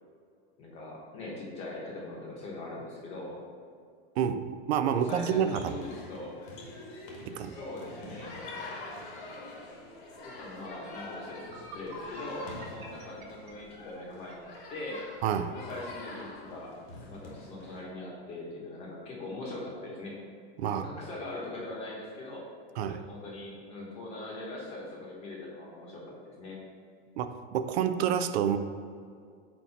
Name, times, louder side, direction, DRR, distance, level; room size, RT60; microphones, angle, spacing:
voice 1, 0.6-3.4 4.9-6.4 7.4-8.3 10.2-15.0 15.5-16.8 17.1-20.2 20.7-22.4 22.9-26.6, left 2 dB, 20° left, -3 dB, 0.9 m, -41 dB
voice 2, 4.2-5.8 7.3-7.5 15.2-15.5 20.6-20.9 22.8-23.0 27.2-28.6, right 8 dB, 80° right, 9 dB, 0.5 m, -28 dB
sound 1, 5.0-17.8, left 2 dB, 50° left, 1.1 m, -45 dB
sound 2, 11.4-14.4, equal, 35° right, 0.9 m, -47 dB
4.4 x 4.3 x 5.7 m, 2.2 s
supercardioid pair, 180°, 32 cm